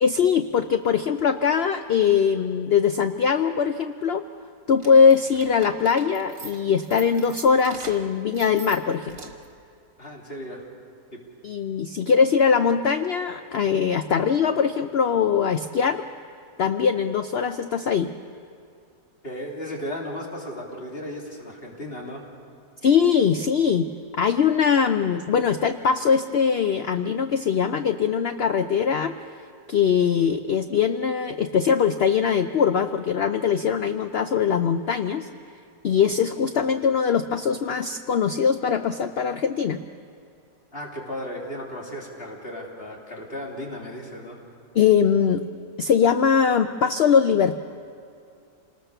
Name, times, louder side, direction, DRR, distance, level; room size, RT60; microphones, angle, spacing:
voice 1, 0.0-4.2 4.7-9.2 11.4-16.0 16.6-18.1 22.8-23.9 24.1-29.1 29.7-35.3 35.8-39.8 44.7-45.4 45.8-47.6, left 6 dB, 60° left, 9 dB, 0.6 m, -21 dB
sound 1, 4.7-9.6, right 4 dB, 65° right, 2.0 m, -43 dB
voice 2, 10.0-10.7 19.2-22.3 40.7-44.4, equal, 35° left, -2 dB, 3.5 m, -35 dB
28.0 x 19.5 x 6.8 m, 2.5 s
omnidirectional pair, 1.7 m